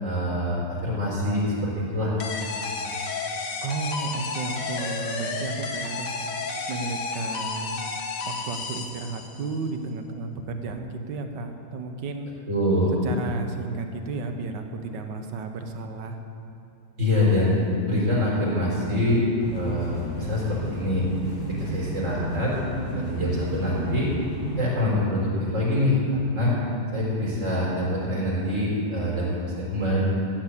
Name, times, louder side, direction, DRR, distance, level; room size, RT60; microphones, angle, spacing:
voice 1, 0.0-2.2 12.5-12.9 17.0-17.5 17.9-19.2 19.5-21.0 21.5-22.5 23.0-24.1 24.6-26.5 26.9-30.0, left 1 dB, 45° right, -6 dB, 4.4 m, -25 dB
sound 1, 2.2-9.5, left 4 dB, 75° left, 1.7 m, -32 dB
voice 2, 3.6-6.2 6.7-7.8 8.2-12.3 13.0-16.2 22.8-23.2, right 3 dB, 80° right, 5 dB, 1.7 m, -33 dB
sound 2, 19.4-24.6, equal, 55° left, 2.5 m, -33 dB
14.0 x 8.1 x 8.3 m, 2.6 s
omnidirectional pair, 1.9 m